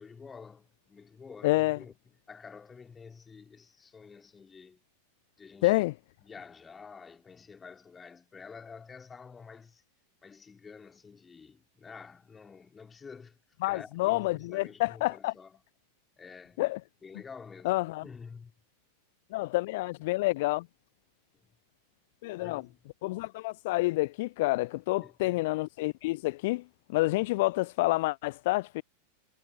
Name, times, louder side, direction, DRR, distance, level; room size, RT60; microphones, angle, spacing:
voice 1, 0.0-1.9 2.3-4.8 5.4-5.8 6.2-9.8 10.2-13.4 13.6-15.6 16.2-16.6 17.0-18.5 22.4-22.8 25.0-25.4, left 5 dB, 15° left, 3.1 m, -49 dB
voice 2, 1.4-1.8 5.6-5.9 13.6-15.3 16.6-16.8 17.6-18.0 19.3-20.7 22.2-22.6 23.0-26.6 26.9-28.8, left 20 dB, 50° left, 0.3 m, -28 dB
figure-of-eight pair, 90°, 0 cm